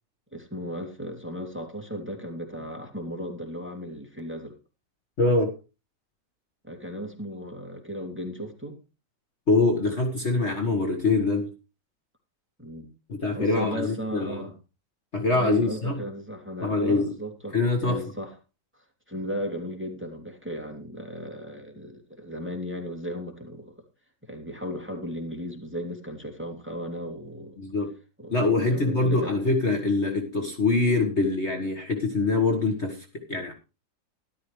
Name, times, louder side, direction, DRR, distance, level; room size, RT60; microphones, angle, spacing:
voice 1, 0.3-4.6 6.7-8.8 12.6-12.9 13.3-14.5 15.3-18.3 18.7-23.8 24.2-27.6 28.2-29.4, equal, 5° right, 2.7 m, -36 dB
voice 2, 5.2-5.5 9.5-11.5 13.1-14.4 15.1-16.1 16.6-17.1 17.5-18.0 27.6-27.9 28.3-33.5, left 3 dB, 40° left, 1.8 m, -24 dB
13.0 x 12.5 x 3.2 m
omnidirectional pair, 1.9 m